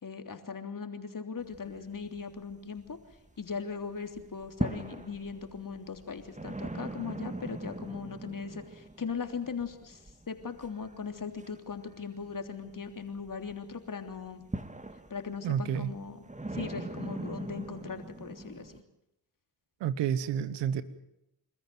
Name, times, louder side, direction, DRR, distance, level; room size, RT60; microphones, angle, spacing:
voice 1, 0.0-3.0 3.4-10.0 10.3-14.4 15.1-16.3 16.5-18.8, left 5 dB, 50° left, 6 dB, 3.3 m, -39 dB
sound 1, 1.4-3.6 3.9-18.8, right 2 dB, 15° right, 2.1 m, -42 dB
voice 2, 15.4-15.9 19.8-20.8, right 9 dB, 90° right, 15 dB, 1.1 m, -29 dB
28.0 x 13.5 x 9.3 m, 0.84 s
supercardioid pair, 40°, 41 cm